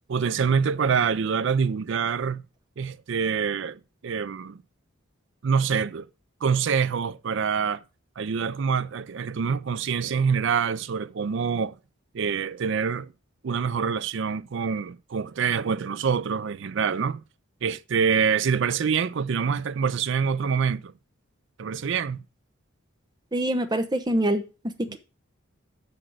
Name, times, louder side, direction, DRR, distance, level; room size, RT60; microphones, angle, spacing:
voice 1, 0.1-2.4 2.8-4.6 5.4-6.1 6.4-7.8 8.2-11.8 12.1-13.1 13.4-17.2 17.6-20.9 21.6-22.2 24.9-25.0, right 6 dB, 60° right, 0.4 m, -25 dB
voice 2, 23.3-25.0, right 1 dB, 20° right, 0.8 m, -25 dB
6.5 x 6.0 x 6.3 m
head